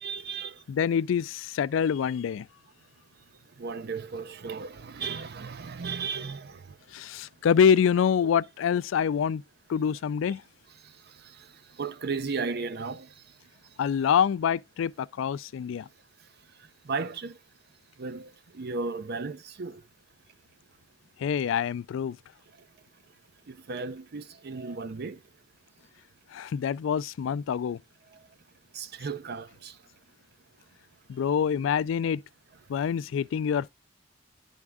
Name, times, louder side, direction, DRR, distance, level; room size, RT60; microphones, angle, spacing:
voice 1, 0.0-0.5 3.6-6.7 11.8-13.1 16.9-17.4 18.0-18.3 18.5-19.8 23.5-25.2 28.7-29.7, right 4 dB, 60° right, 0.6 m, -35 dB
voice 2, 0.7-2.5 6.9-9.4 9.7-10.4 13.8-15.9 21.2-22.2 26.3-27.8 31.1-32.2 32.7-33.7, left 7 dB, 85° left, 0.3 m, -26 dB
11.0 x 3.6 x 3.5 m
head